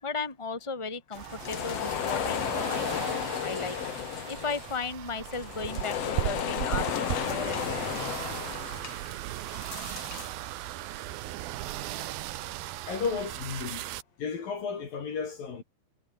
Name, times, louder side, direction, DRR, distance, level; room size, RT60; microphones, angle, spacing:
voice 1, 0.0-3.1 3.4-3.8 4.3-7.9, left 4 dB, 5° left, 3.6 m, -36 dB
sound 1, 1.1-10.3, left 9 dB, 80° left, 1.4 m, -33 dB
sound 2, 1.2-14.0, right 15 dB, 70° right, 2.4 m, -37 dB
voice 2, 12.9-13.8 14.2-15.6, left 5 dB, 50° left, 4.9 m, -33 dB
omnidirectional pair, 5.4 m